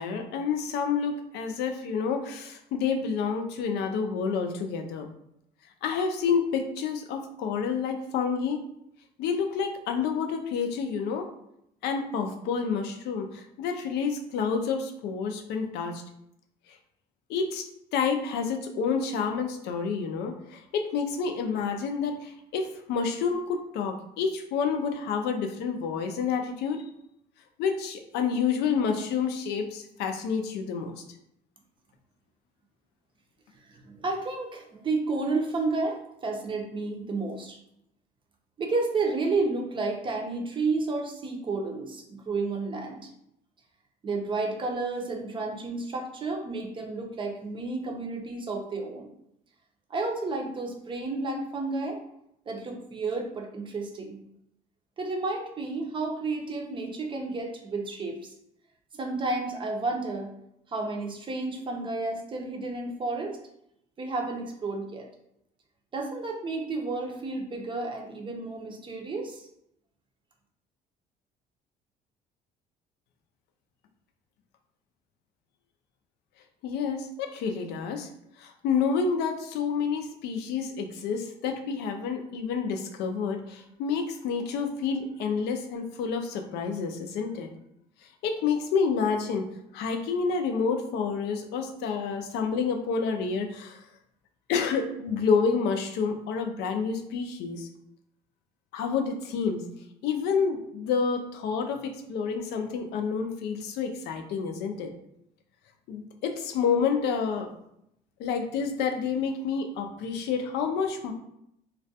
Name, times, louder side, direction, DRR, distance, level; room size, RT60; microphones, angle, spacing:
voice 1, 0.0-5.1 5.8-8.6 9.2-11.3 11.8-16.0 17.3-17.7 17.9-26.8 27.6-31.0 76.6-78.1 78.4-87.5 88.2-89.5 89.7-93.8 94.5-97.7 98.7-99.6 100.0-104.9 105.9-107.5 108.2-111.1, left 5 dB, 80° left, 4 dB, 0.4 m, -29 dB
voice 2, 33.8-37.6 38.6-43.1 44.0-49.1 49.9-52.0 52.5-54.2 55.0-58.3 58.9-60.3 60.7-63.4 64.0-65.1 65.9-69.4, right 3 dB, 30° right, 1 dB, 0.5 m, -31 dB
2.3 x 2.1 x 2.7 m, 0.77 s
cardioid pair, 110°, 17 cm